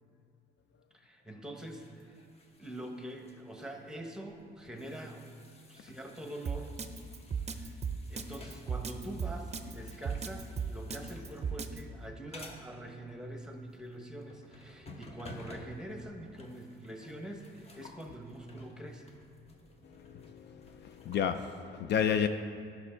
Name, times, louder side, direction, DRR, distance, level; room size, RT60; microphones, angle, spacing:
voice 1, 0.9-2.3 2.6-5.3 5.7-6.7 7.5-7.8 8.1-19.2, right 1 dB, 5° right, 3 dB, 1.0 m, -44 dB
sound 1, 1.6-21.5, left 1 dB, 30° left, 1.0 m, -55 dB
Drum kit, 6.4-11.8, right 6 dB, 35° right, 0.5 m, -35 dB
voice 2, 19.8-22.3, left 8 dB, 60° left, 9 dB, 0.4 m, -32 dB
10.0 x 6.1 x 4.3 m, 2.4 s
cardioid pair, 90°, 20 cm